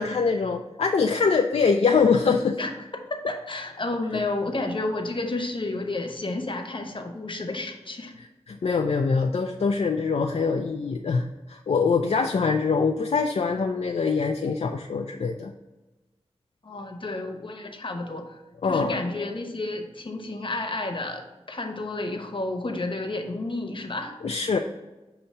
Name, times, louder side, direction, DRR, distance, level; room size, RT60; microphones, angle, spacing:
voice 1, 0.0-2.6 8.2-15.5 18.6-19.0 24.2-24.6, left 5 dB, 70° left, 3 dB, 0.4 m, -24 dB
voice 2, 3.1-8.1 16.6-18.4 18.7-21.2 21.5-24.1, left 2 dB, 50° left, 4 dB, 0.9 m, -31 dB
6.6 x 2.8 x 5.5 m, 1.1 s
wide cardioid pair, 65°, 11 cm